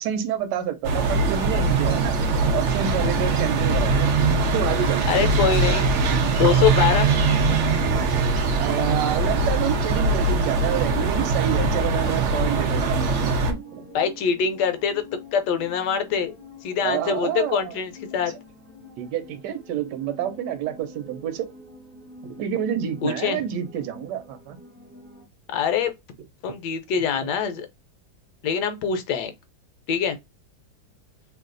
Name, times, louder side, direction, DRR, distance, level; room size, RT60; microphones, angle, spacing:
voice 1, 0.0-2.2 2.5-4.1 4.5-5.3 8.6-13.1 13.5-13.9 16.8-17.8 19.0-21.5 22.2-24.6 27.1-27.3, right 10 dB, 70° right, 1.2 m, -28 dB
sound 1, 0.8-13.5, right 3 dB, 85° right, 0.6 m, -21 dB
voice 2, 5.1-5.9 6.3-7.1 13.9-15.0 15.3-16.3 16.6-18.3 23.0-23.4 25.5-25.9 26.4-27.7 28.4-29.3 29.9-30.2, left 7 dB, 70° left, 1.2 m, -24 dB
sound 2, 11.9-25.3, left 1 dB, 15° right, 0.4 m, -45 dB
3.2 x 2.3 x 3.8 m
omnidirectional pair, 2.1 m